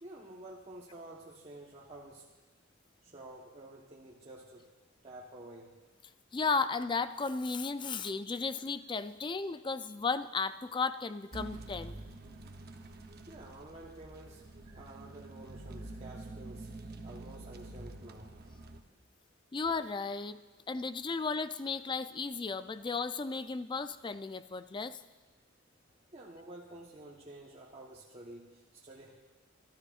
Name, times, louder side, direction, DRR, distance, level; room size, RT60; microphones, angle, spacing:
voice 1, 0.0-2.3 3.0-4.7 5.0-5.8 13.3-16.7 17.0-18.4 26.1-29.1, right 1 dB, 30° right, -4 dB, 1.1 m, -50 dB
voice 2, 6.3-12.0 19.5-20.4 20.7-25.0, left 4 dB, 25° left, 12 dB, 0.4 m, -34 dB
sound 1, 11.3-18.8, right 2 dB, 55° right, 0.8 m, -47 dB
26.5 x 12.5 x 2.4 m, 1.2 s
head